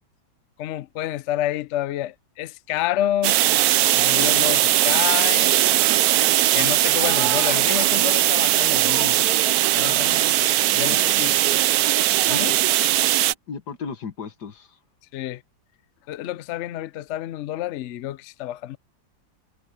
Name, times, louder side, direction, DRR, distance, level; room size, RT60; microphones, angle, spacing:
voice 1, 0.6-3.4 3.9-5.6 6.5-9.3 9.7-10.2 10.7-11.3 12.3-12.6 15.1-15.4 16.1-18.8, left 13 dB, 90° left, 0.6 m, -29 dB
sound 1, 3.2-13.3, right 14 dB, 70° right, 0.9 m, -19 dB
voice 2, 10.9-11.4 13.1-14.8, left 5 dB, 60° left, 2.0 m, -37 dB
omnidirectional pair, 2.0 m